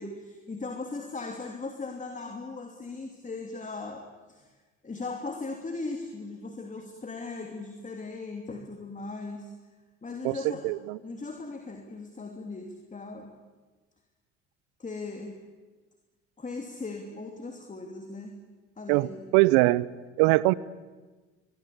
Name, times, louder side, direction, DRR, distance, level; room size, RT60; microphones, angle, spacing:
voice 1, 0.0-4.5 4.8-9.5 10.0-10.7 11.0-13.3 14.8-15.4 16.4-18.4 18.8-19.3, left 3 dB, 20° left, 3.1 m, -38 dB
voice 2, 10.2-11.0 18.9-19.9 20.2-20.5, right 20 dB, 70° right, 0.8 m, -22 dB
24.0 x 21.5 x 8.6 m
hypercardioid pair, 70°, 36 cm